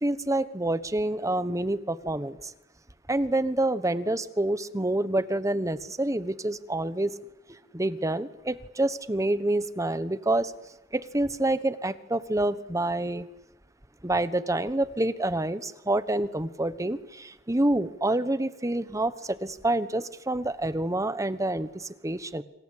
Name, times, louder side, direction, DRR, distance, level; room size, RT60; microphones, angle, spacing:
voice 1, 0.0-2.5 3.1-7.1 7.7-10.5 10.9-13.3 14.0-22.4, right 1 dB, 15° right, 1.2 m, -27 dB
27.0 x 24.5 x 8.6 m
head